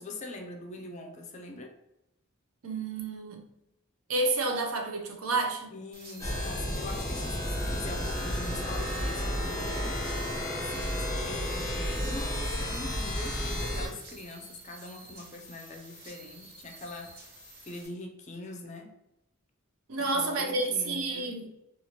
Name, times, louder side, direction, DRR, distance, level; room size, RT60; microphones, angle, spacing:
voice 1, 0.0-1.7 5.7-17.3 17.6-18.9 20.0-21.4, left 2 dB, 35° left, 0.4 m, -43 dB
voice 2, 2.6-3.4 4.1-5.7 19.9-21.5, right 3 dB, 85° right, 0.5 m, -30 dB
sound 1, 5.9-17.9, right 2 dB, 45° right, 0.7 m, -50 dB
sound 2, 6.2-13.9, equal, 15° left, 0.8 m, -32 dB
2.8 x 2.4 x 2.8 m
head